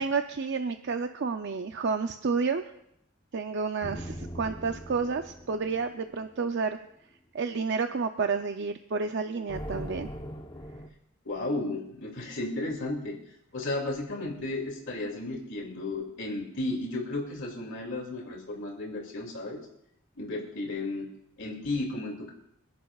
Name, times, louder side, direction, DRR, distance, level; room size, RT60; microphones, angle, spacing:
voice 1, 0.0-2.6 3.3-6.8 7.3-10.1, right 4 dB, 55° right, 7 dB, 0.5 m, -30 dB
sound 1, 3.8-6.5 9.5-10.9, equal, 25° left, 0.9 m, -40 dB
voice 2, 11.2-13.2 13.5-19.6 20.2-21.1 21.4-22.3, left 2 dB, 60° left, 0 dB, 2.5 m, -33 dB
27.5 x 11.0 x 2.4 m, 0.78 s
head